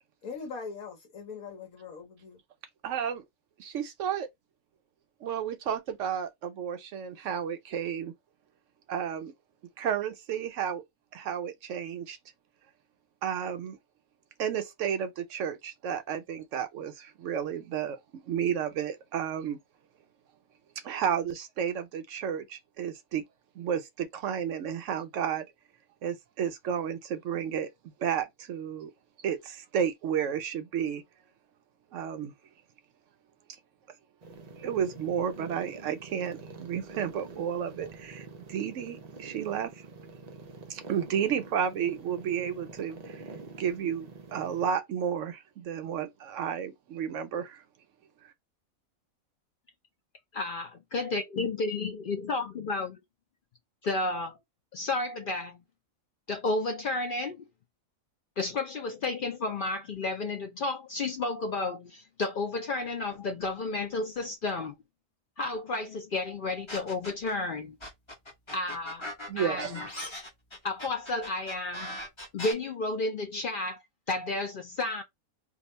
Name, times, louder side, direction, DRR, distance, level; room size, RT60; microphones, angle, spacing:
voice 1, 0.2-2.4, left 5 dB, 80° left, 1.3 m, -41 dB
voice 2, 2.8-3.2 3.6-4.3 5.2-8.1 8.9-9.3 9.8-10.8 11.1-12.2 13.2-13.8 14.4-18.0 18.2-19.6 20.8-23.2 23.6-25.5 26.0-27.7 28.0-28.9 29.2-31.0 31.9-32.3 34.6-39.9 40.7-43.2 43.6-47.6 69.3-69.8, right 8 dB, 70° right, 0.8 m, -32 dB
sound 1, 34.2-44.7, right 4 dB, 85° right, 0.3 m, -46 dB
voice 3, 50.3-53.0 53.8-54.4 54.7-55.6 56.3-57.4 58.4-64.7 65.4-67.8 68.5-69.1 69.4-69.8 70.6-72.0 72.3-73.8 74.1-75.0, left 3 dB, 65° left, 0.5 m, -32 dB
sound 2, 66.7-67.3 67.8-72.5, left 1 dB, 25° left, 0.9 m, -39 dB
2.8 x 2.3 x 4.1 m
omnidirectional pair, 1.5 m